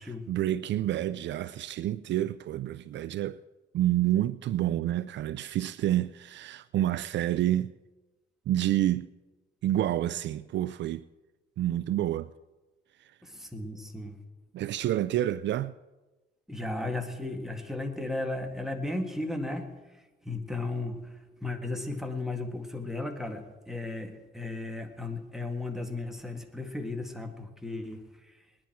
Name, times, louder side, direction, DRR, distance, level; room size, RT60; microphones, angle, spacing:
voice 1, 0.0-3.4 3.7-7.7 8.5-9.1 9.6-11.0 11.6-12.3 13.0-13.2 14.5-15.7, right 13 dB, 65° right, 0.4 m, -28 dB
voice 2, 13.2-14.2 16.5-28.4, left 2 dB, ahead, 1.8 m, -35 dB
20.0 x 10.5 x 4.5 m
cardioid pair, 90°, 20 cm